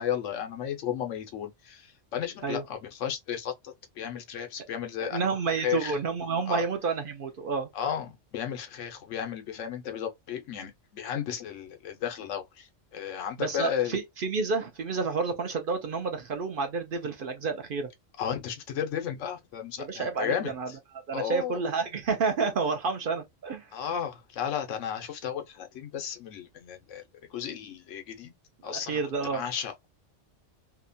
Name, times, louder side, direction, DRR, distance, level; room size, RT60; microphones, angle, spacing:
voice 1, 0.0-5.2 5.6-6.0 6.5-6.6 7.7-13.9 18.2-20.8 21.1-21.6 23.7-27.0 27.3-28.3 28.6-29.0 29.3-29.9, left 9 dB, 90° left, 1.0 m, -34 dB
voice 2, 5.0-7.7 13.4-17.9 19.8-20.7 21.1-23.7 28.6-29.4, right 4 dB, 55° right, 0.7 m, -30 dB
2.8 x 2.2 x 2.5 m
omnidirectional pair, 1.2 m